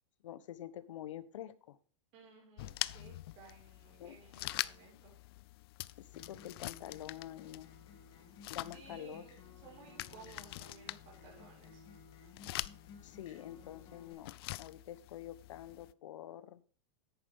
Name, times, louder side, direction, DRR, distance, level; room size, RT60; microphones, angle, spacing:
voice 1, 0.2-1.8 4.0-4.2 6.0-7.7 8.5-9.2 13.0-16.6, left 12 dB, 75° left, 16 dB, 1.0 m, -47 dB
voice 2, 2.1-5.1 8.7-11.8, right 5 dB, 40° right, -3 dB, 6.0 m, -57 dB
sound 1, 2.6-15.9, left 17 dB, 50° left, 0.4 m, -45 dB
Acoustic guitar, 6.1-14.1, left 4 dB, 25° left, 2.5 m, -58 dB
10.5 x 9.3 x 3.6 m, 0.41 s
supercardioid pair, 165°, 16 cm